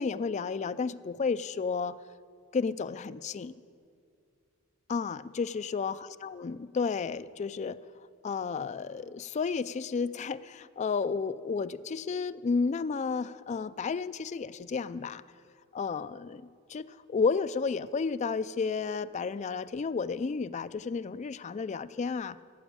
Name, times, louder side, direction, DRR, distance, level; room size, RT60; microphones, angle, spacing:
voice 1, 0.0-2.0 2.5-3.6 4.9-7.8 8.2-15.2 15.7-22.4, left 5 dB, 35° left, 14 dB, 0.3 m, -32 dB
14.5 x 7.1 x 9.6 m, 2.3 s
head